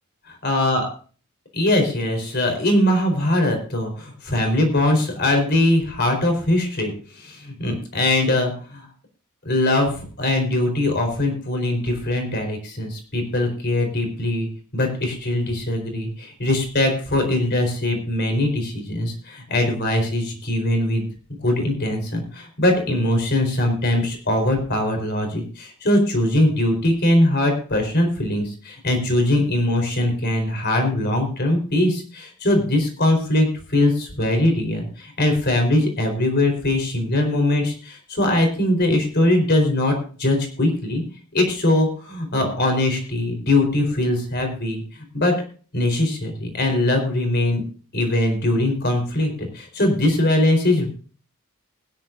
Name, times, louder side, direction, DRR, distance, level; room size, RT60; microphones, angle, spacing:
voice 1, 0.3-0.9 1.5-6.9 7.2-8.9 9.4-14.5 14.7-21.0 21.4-41.0 41.3-44.8 45.1-45.3 45.7-47.6 47.9-50.9, left 1 dB, 50° left, 4 dB, 4.3 m, -21 dB
20.5 x 10.5 x 2.6 m, 0.40 s
head